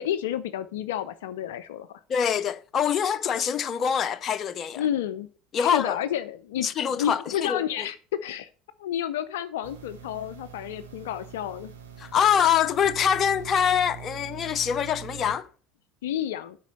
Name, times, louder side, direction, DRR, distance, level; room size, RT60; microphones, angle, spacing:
voice 1, 0.0-2.0 4.8-5.3 5.6-6.7 6.9-8.5 8.8-11.7 16.0-16.6, left 10 dB, 70° left, 0.4 m, -30 dB
voice 2, 2.1-4.8 5.5-6.0 6.6-7.9 12.0-15.5, left 8 dB, 40° left, 0.7 m, -24 dB
sound 1, 9.6-15.4, right 8 dB, 80° right, 1.8 m, -43 dB
8.1 x 5.3 x 6.7 m
figure-of-eight pair, 70°, 0 cm